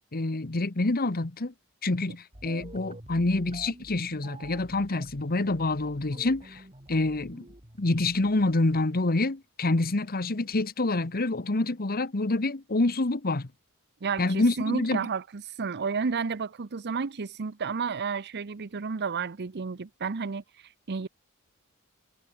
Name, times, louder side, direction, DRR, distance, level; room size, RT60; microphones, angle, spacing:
voice 1, 0.1-1.5 1.8-6.6 6.9-7.4 7.8-13.5 14.2-15.0, left 2 dB, 45° left, 1.2 m, -27 dB
sound 1, 2.3-9.0, right 1 dB, 30° right, 3.9 m, -48 dB
voice 2, 14.0-21.1, right 5 dB, 50° right, 0.7 m, -32 dB
head